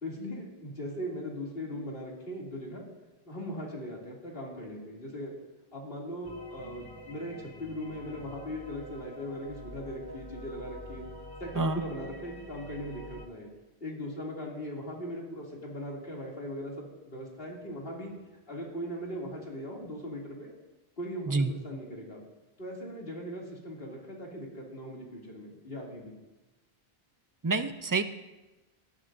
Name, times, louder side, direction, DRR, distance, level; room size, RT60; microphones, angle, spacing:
voice 1, 0.0-2.8 3.2-5.3 5.7-11.0 11.4-13.5 13.8-18.1 18.5-20.5 21.0-22.2 22.6-26.1, equal, 65° left, -3 dB, 2.9 m, -39 dB
sound 1, 6.2-13.3, equal, 25° left, 0.8 m, -46 dB
voice 2, 27.4-28.0, right 3 dB, 25° right, 9 dB, 0.5 m, -27 dB
18.5 x 12.0 x 2.6 m, 1.1 s
omnidirectional pair, 1.1 m